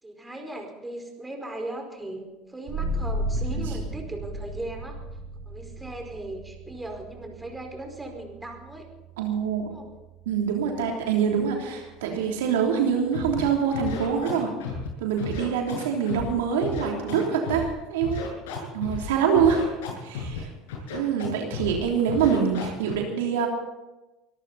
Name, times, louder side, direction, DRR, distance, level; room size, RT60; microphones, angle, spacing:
voice 1, 0.0-5.0 5.5-8.9 9.6-9.9 19.1-19.6, right 1 dB, 10° right, 3 dB, 4.9 m, -38 dB
sound 1, 2.7-13.9, right 1 dB, 60° right, 2.7 m, -36 dB
voice 2, 9.2-9.7 10.2-14.5 15.0-18.3 18.7-19.7 20.0-20.5 20.9-23.5, right 7 dB, 85° right, 1 dB, 3.2 m, -25 dB
Scratching (performance technique), 13.1-13.4 13.7-14.9 15.2-16.3 16.6-17.7 18.0-19.1 19.4-20.4 20.7-21.3 21.5-21.8 22.1-22.9, left 4 dB, 80° left, 7.8 m, -33 dB
24.0 x 13.5 x 4.2 m, 1.0 s
supercardioid pair, 90°, 0 cm